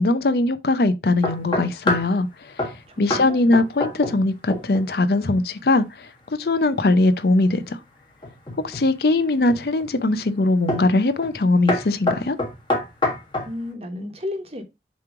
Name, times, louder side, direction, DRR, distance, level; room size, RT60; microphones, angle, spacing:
voice 1, 0.0-6.1 6.4-7.8 8.6-12.4, left 2 dB, 60° left, 0.6 m, -21 dB
sound 1, 1.2-2.2 2.6-2.8 3.1-3.3 3.5-4.2 4.5-4.9 8.2-8.9 9.5-9.9 10.7-10.9 11.2-11.4 11.7-13.5, left 1 dB, 25° left, 1.7 m, -25 dB
voice 2, 2.9-3.5 13.4-14.6, left 2 dB, 35° right, 1.2 m, -33 dB
7.1 x 3.1 x 4.8 m
head